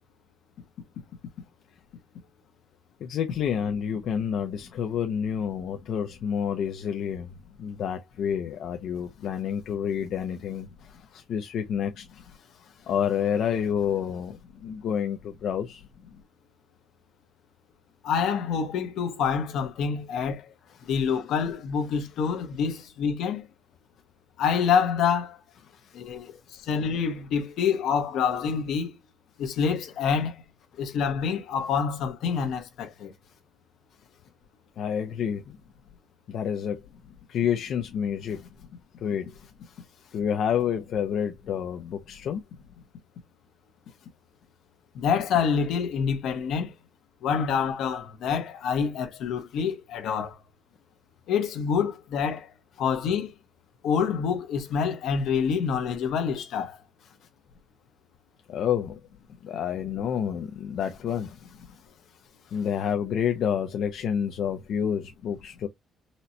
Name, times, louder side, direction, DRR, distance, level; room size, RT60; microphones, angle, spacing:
voice 1, 3.0-7.3 7.6-15.8 20.8-20.9 25.7-26.0 34.8-35.6 36.3-36.8 37.3-38.5 39.0-42.4 58.5-59.0 59.4-61.6 62.4-65.7, left 8 dB, 60° left, 0.4 m, -29 dB
voice 2, 18.0-20.4 20.9-23.4 24.4-25.4 25.9-26.4 26.7-28.9 29.4-30.3 30.8-33.1 44.9-46.7 47.2-50.3 51.3-52.5 52.8-53.3 53.8-56.8, left 6 dB, 75° left, 0.9 m, -26 dB
4.1 x 2.1 x 2.5 m
cardioid pair, 160°, 0 cm